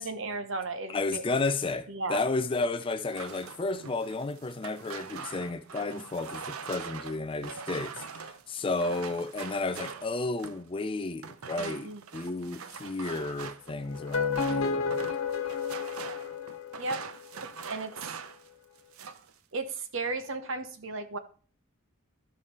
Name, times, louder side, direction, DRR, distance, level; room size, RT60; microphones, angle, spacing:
voice 1, 0.0-1.2 1.9-2.2 11.6-12.0 16.8-17.0 17.6-18.1 19.5-21.2, right 3 dB, 60° right, 1.0 m, -35 dB
voice 2, 0.9-15.1, left 3 dB, 25° left, 0.4 m, -32 dB
sound 1, 3.0-10.7 11.2-18.5 18.8-19.3, right 6 dB, 80° right, 0.6 m, -43 dB
sound 2, 13.9-17.1, left 5 dB, 80° left, 1.6 m, -31 dB
12.5 x 4.9 x 4.3 m
head